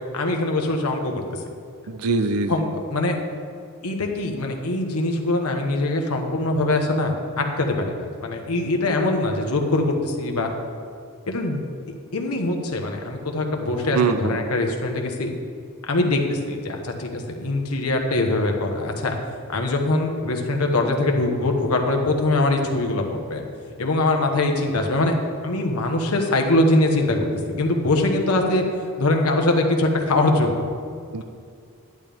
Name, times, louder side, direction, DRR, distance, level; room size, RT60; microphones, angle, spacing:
voice 1, 0.1-1.4 2.5-3.2 3.8-10.5 11.3-11.6 12.1-15.3 15.9-19.1 19.5-23.4 23.8-25.1 25.4-27.3 27.6-28.6 29.0-30.6, left 2 dB, 80° left, 2 dB, 1.2 m, -22 dB
voice 2, 1.9-2.7 13.9-14.4 31.1-31.2, right 4 dB, 75° right, 9 dB, 0.5 m, -23 dB
11.0 x 10.5 x 3.5 m, 2.3 s
head